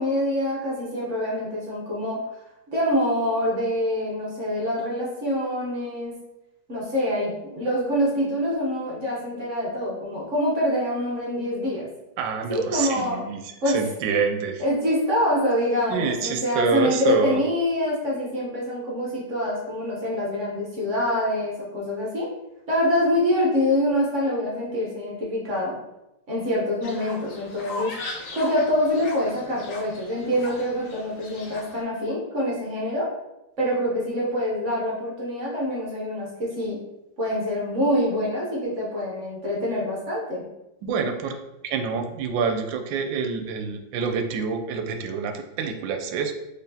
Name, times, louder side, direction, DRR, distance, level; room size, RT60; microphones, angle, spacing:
voice 1, 0.0-2.2 2.7-6.1 6.7-11.9 12.5-13.2 13.6-13.8 14.6-22.3 22.7-25.8 26.3-27.9 28.3-33.1 33.6-36.8 37.2-40.4, left 1 dB, 50° right, -4 dB, 1.1 m, -25 dB
voice 2, 12.2-14.6 15.9-17.4 40.8-41.4 41.6-46.3, right 6 dB, 80° right, 5 dB, 1.3 m, -27 dB
Fowl, 26.8-31.8, left 2 dB, 65° left, 0.9 m, -38 dB
4.1 x 3.3 x 2.7 m, 0.94 s
omnidirectional pair, 2.0 m